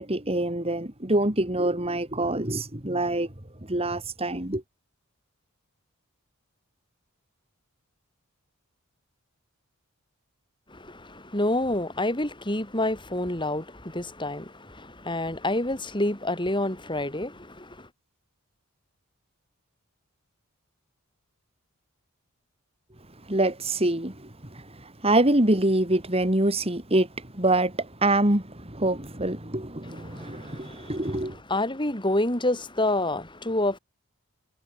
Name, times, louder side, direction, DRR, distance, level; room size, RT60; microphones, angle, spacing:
voice 1, 0.0-3.3 3.6-4.6 23.3-31.4, right 1 dB, 25° right, 3.2 m, -25 dB
voice 2, 10.7-17.9 30.0-30.9 31.5-33.8, left 1 dB, 20° left, 5.6 m, -28 dB
head